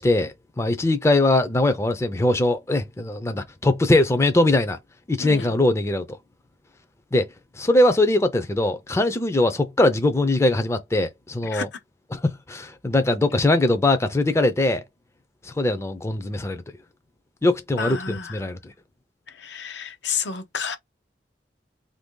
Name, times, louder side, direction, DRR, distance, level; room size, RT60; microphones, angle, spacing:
voice 1, 0.0-4.8 5.1-6.2 7.1-7.3 7.6-11.7 12.1-14.8 15.4-16.6 17.4-18.7, left 2 dB, 15° left, 0.4 m, -21 dB
voice 2, 5.2-5.6 11.5-11.8 17.8-18.4 19.3-20.8, left 6 dB, 80° left, 0.7 m, -31 dB
3.0 x 2.6 x 3.6 m
head